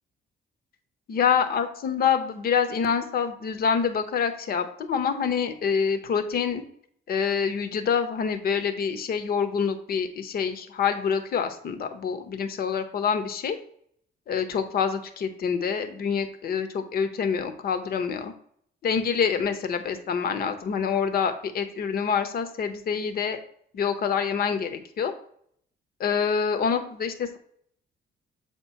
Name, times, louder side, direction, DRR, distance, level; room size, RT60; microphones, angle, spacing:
voice 1, 1.1-6.6 7.1-13.6 14.3-18.3 18.8-23.4 23.7-25.1 26.0-27.4, left 6 dB, 50° left, 8 dB, 0.8 m, -26 dB
7.7 x 3.0 x 5.6 m, 0.64 s
cardioid pair, 160°, 20 cm